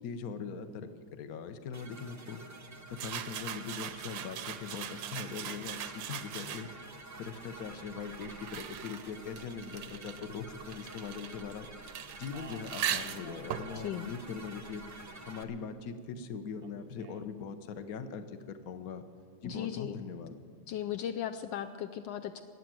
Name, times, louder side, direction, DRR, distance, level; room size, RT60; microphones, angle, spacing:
voice 1, 0.0-2.4 2.9-6.7 7.1-11.7 12.2-14.8 15.3-19.0 19.4-20.4, left 6 dB, 55° left, 9 dB, 1.2 m, -41 dB
sound 1, 1.7-15.4, right 2 dB, 25° right, 0.3 m, -50 dB
sound 2, 2.9-6.9 7.7-15.1, right 10 dB, 75° right, 1.4 m, -41 dB
Speech, 12.1-14.0 14.3-15.2 16.6-17.3, right 7 dB, 60° right, 0.7 m, -53 dB
voice 2, 19.4-20.0 20.7-22.4, left 10 dB, 75° left, 7 dB, 1.3 m, -37 dB
20.5 x 8.3 x 7.6 m, 2.2 s
omnidirectional pair, 2.1 m